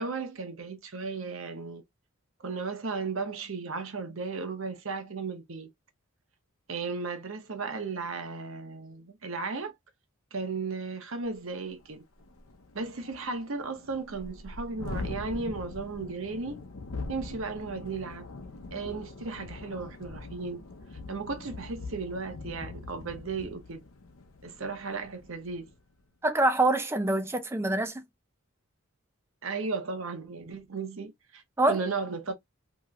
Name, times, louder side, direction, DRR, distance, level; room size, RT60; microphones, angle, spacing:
voice 1, 0.0-1.8 2.4-5.7 6.7-9.7 10.3-12.0 12.7-16.6 17.1-18.3 18.7-20.6 21.1-23.8 24.4-25.7 29.4-31.4 31.7-32.3, right 4 dB, 65° right, 0.8 m, -35 dB
Thunderstorm, 11.3-11.4 11.8-11.9 12.2-25.8, left 3 dB, 75° left, 0.7 m, -42 dB
voice 2, 26.2-28.1 31.6-31.8, right 2 dB, 10° right, 0.4 m, -25 dB
3.0 x 2.9 x 2.4 m
head